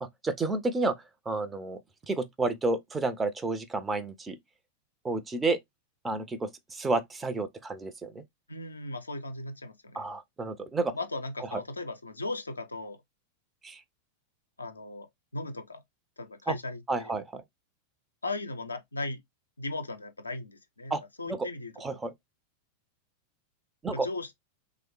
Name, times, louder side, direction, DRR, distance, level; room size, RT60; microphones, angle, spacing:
voice 1, 0.0-1.0 1.3-1.8 2.1-4.4 5.0-5.6 6.0-8.2 9.9-10.9 11.5-11.6 13.6-13.8 16.5-16.6 16.9-17.4 20.9-21.0 21.3-21.5 21.8-22.1 23.8-24.1, right 3 dB, 15° right, 0.4 m, -30 dB
voice 2, 8.5-10.1 10.9-13.0 14.6-15.1 15.3-15.8 16.2-17.1 18.2-19.2 19.6-22.0 23.9-24.3, left 2 dB, 80° left, 0.4 m, -37 dB
3.2 x 2.0 x 2.9 m
figure-of-eight pair, 90°, 0 cm